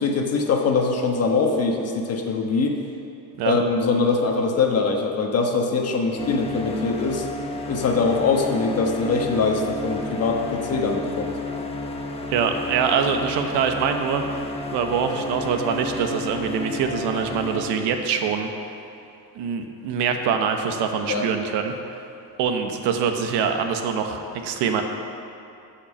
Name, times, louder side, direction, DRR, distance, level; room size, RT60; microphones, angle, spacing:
voice 1, 0.0-2.8 3.4-7.3 7.7-11.4 21.1-21.2, left 4 dB, 40° left, 2 dB, 1.3 m, -22 dB
sound 1, 6.2-17.6, left 2 dB, 15° left, 0.9 m, -32 dB
voice 2, 12.3-14.2 14.7-18.5 19.3-21.7 22.4-24.8, right 6 dB, 80° right, 5 dB, 1.2 m, -24 dB
13.5 x 5.8 x 7.2 m, 2.7 s
cardioid pair, 150°, 40 cm